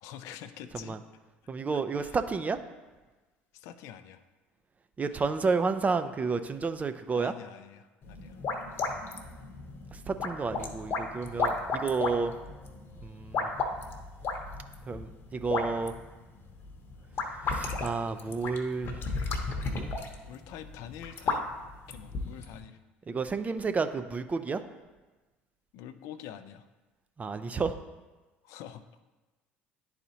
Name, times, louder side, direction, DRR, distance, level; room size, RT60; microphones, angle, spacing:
voice 1, 0.0-1.0 2.0-2.2 3.5-4.2 5.1-5.2 7.1-8.4 9.4-9.5 20.3-21.4 21.9-22.8 25.7-26.7 28.4-28.8, left 10 dB, 60° left, 10 dB, 0.4 m, -46 dB
voice 2, 1.5-2.6 5.0-7.3 9.9-12.3 13.0-13.5 14.9-15.9 17.5-19.0 19.6-19.9 23.1-24.6 27.2-27.8, right 4 dB, 25° right, 10 dB, 0.5 m, -31 dB
sound 1, 8.0-22.6, left 4 dB, 45° left, 0.9 m, -35 dB
10.5 x 4.1 x 2.8 m, 1.2 s
hypercardioid pair, 65°, 6 cm